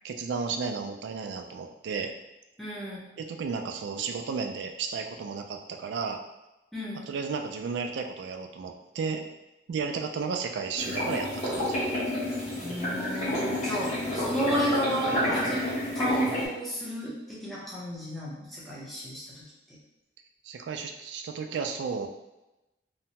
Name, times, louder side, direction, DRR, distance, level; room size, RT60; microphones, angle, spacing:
voice 1, 0.0-2.1 3.2-6.2 7.1-9.2 9.7-11.8 20.4-22.1, right 5 dB, 75° right, 5 dB, 0.3 m, -33 dB
voice 2, 2.6-3.1 6.7-7.1 12.6-15.7 15.9-19.4, equal, ahead, -7 dB, 0.6 m, -32 dB
sound 1, 10.8-16.5, left 1 dB, 35° left, 1.0 m, -29 dB
2.7 x 2.2 x 2.8 m, 0.97 s
head